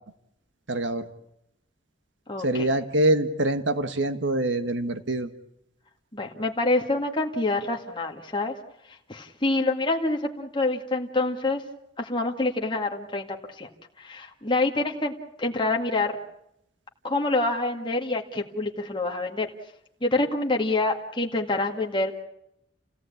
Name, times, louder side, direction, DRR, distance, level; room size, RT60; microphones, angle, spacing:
voice 1, 0.7-1.1 2.4-5.3, right 1 dB, 85° right, 10 dB, 1.6 m, -25 dB
voice 2, 2.3-2.7 6.1-8.5 8.9-11.6 12.0-13.7 14.0-16.2 17.0-19.5 20.0-22.2, left 2 dB, 25° left, 1 dB, 2.0 m, -26 dB
29.0 x 17.0 x 8.6 m, 0.79 s
head